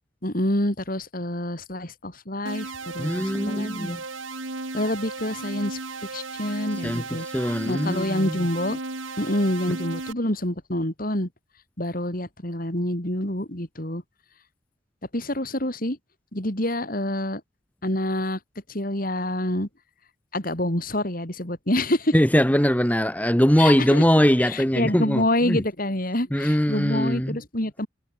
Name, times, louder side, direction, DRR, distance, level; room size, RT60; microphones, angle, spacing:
voice 1, 0.2-4.0 4.7-5.8 6.1-7.3 7.7-8.8 9.2-11.3 11.8-14.0 15.1-16.0 16.3-17.4 17.8-18.4 18.7-19.7 20.3-22.1 23.6-24.0 24.4-27.9, left 1 dB, 45° left, 3.9 m, -27 dB
sound 1, 2.5-10.1, right 3 dB, 85° right, 3.9 m, -35 dB
voice 2, 3.0-4.0 6.8-7.0 7.3-8.4 22.1-25.6 26.3-27.4, equal, 10° left, 2.3 m, -21 dB
head